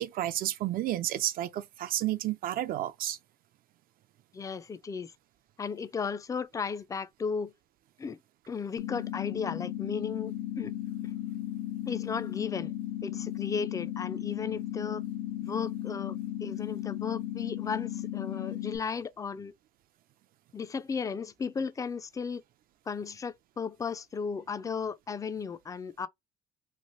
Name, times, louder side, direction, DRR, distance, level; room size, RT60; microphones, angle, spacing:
voice 1, 0.0-3.2, right 13 dB, 60° right, 0.4 m, -31 dB
voice 2, 4.3-5.1 5.6-7.5 8.0-8.2 8.5-10.7 11.9-12.7 13.0-15.0 15.4-19.5 20.5-22.4 22.9-26.1, left 5 dB, 20° left, 0.3 m, -35 dB
sound 1, 8.8-18.8, left 13 dB, 90° left, 0.5 m, -35 dB
3.1 x 2.6 x 2.5 m
cardioid pair, 110°, 17 cm